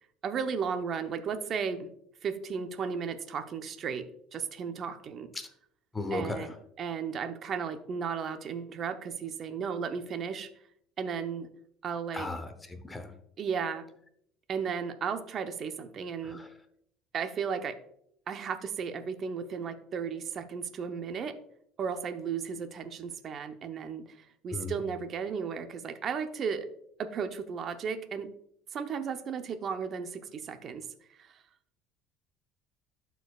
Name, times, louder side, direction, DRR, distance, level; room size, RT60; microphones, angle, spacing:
voice 1, 0.2-1.9 2.2-4.1 4.3-5.3 6.1-10.5 11.0-11.5 11.8-12.3 13.4-13.9 14.5-16.4 17.1-17.8 18.3-21.4 21.8-26.7 27.0-28.3 28.7-30.8 31.2-31.3, right 6 dB, 45° right, 8 dB, 0.7 m, -34 dB
voice 2, 5.9-6.5 12.1-13.1 16.2-16.5 24.5-24.7, left 2 dB, 15° left, 8 dB, 0.8 m, -36 dB
12.5 x 4.6 x 2.4 m, 0.72 s
cardioid pair, 115°, 0 cm